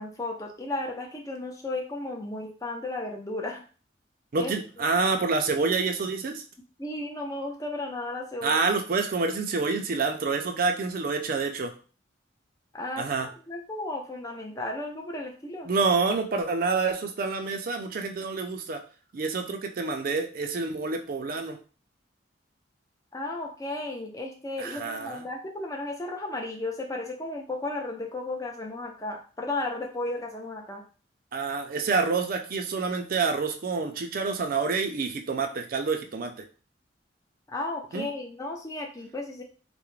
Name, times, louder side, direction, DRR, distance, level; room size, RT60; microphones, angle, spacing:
voice 1, 0.0-3.6 4.4-4.5 4.8-4.9 6.8-8.6 12.7-15.7 23.1-30.9 37.5-39.4, left 2 dB, 20° left, 1 dB, 0.4 m, -34 dB
voice 2, 4.3-6.4 8.4-11.7 13.0-13.3 15.7-18.8 19.1-21.6 24.6-25.2 31.3-36.3 37.9-38.1, right 4 dB, 50° right, 5 dB, 0.4 m, -27 dB
2.4 x 2.1 x 3.0 m, 0.38 s
head